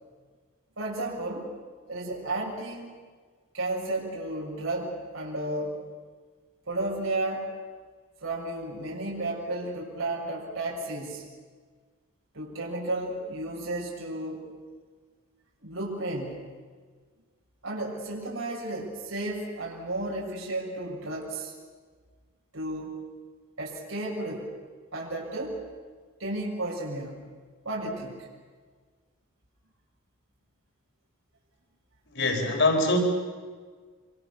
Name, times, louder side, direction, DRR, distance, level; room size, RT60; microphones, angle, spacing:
voice 1, 0.8-1.5 1.9-2.9 3.5-5.8 6.7-7.5 8.2-11.3 12.3-14.5 15.6-16.5 17.6-21.5 22.5-22.9 23.6-24.5 24.9-25.6 26.2-27.3 27.6-28.3, right 2 dB, 90° right, -3 dB, 6.7 m, -33 dB
voice 2, 32.1-33.0, left 2 dB, 60° left, 3 dB, 4.5 m, -23 dB
26.5 x 26.0 x 7.1 m, 1.5 s
head